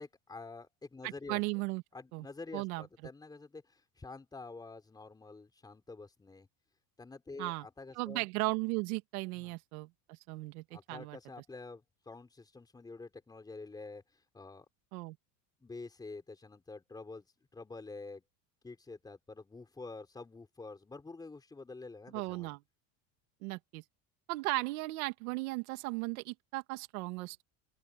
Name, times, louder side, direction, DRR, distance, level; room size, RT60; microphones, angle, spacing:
voice 1, 0.0-1.4 1.9-6.5 7.0-8.2 9.4-9.6 10.7-14.0 14.3-14.7 15.6-17.2 17.5-18.2 18.6-22.5, left 3 dB, 10° left, 4.3 m, -48 dB
voice 2, 1.0-1.8 2.1-2.3 2.5-2.9 7.4-7.7 7.9-11.2 14.9-15.2 22.1-22.6 23.4-23.8 24.3-27.4, right 24 dB, 85° right, 2.5 m, -36 dB
open air
cardioid pair, 170°, 42 cm